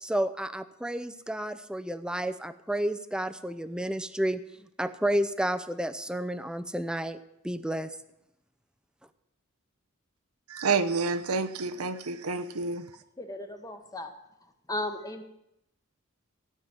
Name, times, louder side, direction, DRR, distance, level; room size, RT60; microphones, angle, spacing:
voice 1, 0.0-7.2 7.4-7.9, right 1 dB, 5° right, 11 dB, 0.5 m, -31 dB
voice 2, 10.5-12.9, right 4 dB, 85° right, 12 dB, 0.9 m, -29 dB
voice 3, 13.2-14.1 14.7-15.2, left 1 dB, 15° left, 6 dB, 1.2 m, -35 dB
16.0 x 5.9 x 8.9 m, 0.85 s
head